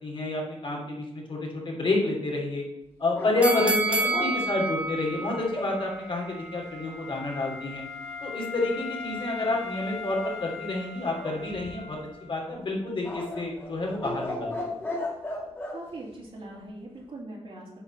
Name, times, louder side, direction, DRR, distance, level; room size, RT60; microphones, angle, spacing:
voice 1, 0.0-2.6 3.0-7.8 8.2-12.0 12.3-14.8, left 2 dB, 55° left, -2 dB, 3.1 m, -29 dB
sound 1, 3.1-5.8 11.1-12.0 13.0-15.8, left 1 dB, 20° left, 2.1 m, -35 dB
sound 2, 3.4-6.5 6.9-7.0, right 2 dB, 10° right, 1.2 m, -29 dB
Wind instrument woodwind instrument, 4.8-12.5, left 5 dB, 90° left, 2.6 m, -40 dB
voice 2, 15.7-17.8, right 2 dB, 65° right, -4 dB, 2.9 m, -41 dB
9.3 x 4.2 x 6.8 m, 0.89 s
wide cardioid pair, 110°, 11 cm